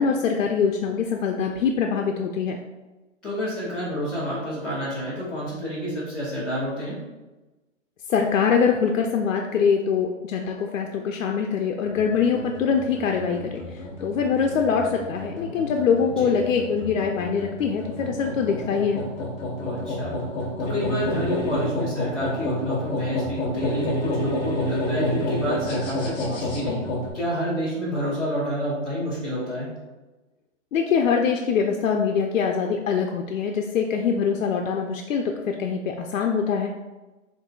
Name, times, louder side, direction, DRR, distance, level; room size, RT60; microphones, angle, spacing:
voice 1, 0.0-2.6 8.1-13.6 14.0-19.0 30.7-36.7, left 6 dB, 90° left, 2 dB, 0.6 m, -23 dB
voice 2, 3.2-7.0 16.1-16.3 19.6-20.1 20.6-26.8 27.1-29.7, equal, ahead, -15 dB, 0.4 m, -29 dB
sound 1, 11.8-27.1, left 1 dB, 25° left, 0.9 m, -29 dB
7.5 x 2.6 x 2.4 m, 1.1 s
hypercardioid pair, 155°, 38 cm